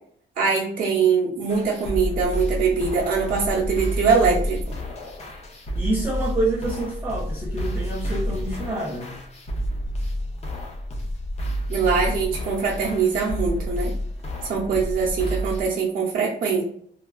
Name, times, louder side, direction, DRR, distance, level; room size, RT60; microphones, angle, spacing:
voice 1, 0.4-4.6 11.7-13.9 14.4-16.6, right 5 dB, 50° right, -5 dB, 0.7 m, -22 dB
sound 1, 1.5-15.6, equal, 35° left, 0.6 m, -29 dB
voice 2, 5.8-9.2, right 2 dB, 10° right, -6 dB, 0.4 m, -27 dB
3.2 x 2.3 x 2.3 m, 0.63 s
wide cardioid pair, 175°, 19 cm